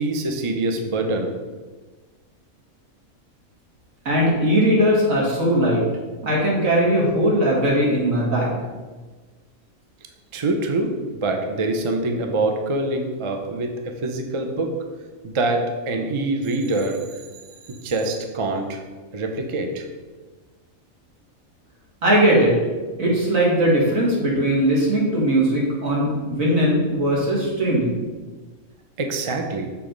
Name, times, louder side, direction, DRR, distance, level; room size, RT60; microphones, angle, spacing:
voice 1, 0.0-1.3 10.3-13.7 14.0-14.7 15.2-17.0 17.7-18.8 19.1-19.9 29.0-29.7, right 2 dB, 35° right, 3 dB, 0.5 m, -24 dB
voice 2, 4.1-5.8 6.2-8.5 22.0-22.6 23.0-28.0, right 1 dB, 75° right, -4 dB, 2.2 m, -19 dB
7.0 x 3.4 x 5.1 m, 1.3 s
omnidirectional pair, 1.4 m